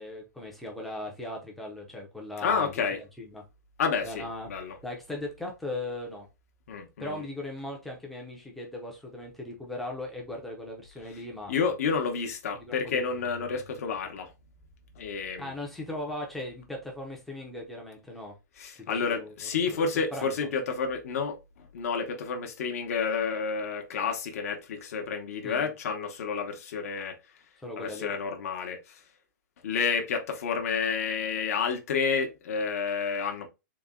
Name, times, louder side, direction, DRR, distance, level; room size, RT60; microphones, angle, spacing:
voice 1, 0.0-3.4 4.0-4.5 4.8-6.3 7.0-11.7 12.6-13.0 15.4-18.3 18.8-19.3 19.7-20.3 25.4-25.7 27.6-28.1, left 1 dB, ahead, 0.6 m, -38 dB
voice 2, 2.4-3.0 3.8-4.8 6.7-7.2 11.5-14.3 15.0-15.5 18.6-27.2 27.8-29.0 29.6-33.5, left 5 dB, 50° left, 0.9 m, -30 dB
4.0 x 2.2 x 3.6 m
hypercardioid pair, 175°, 10 cm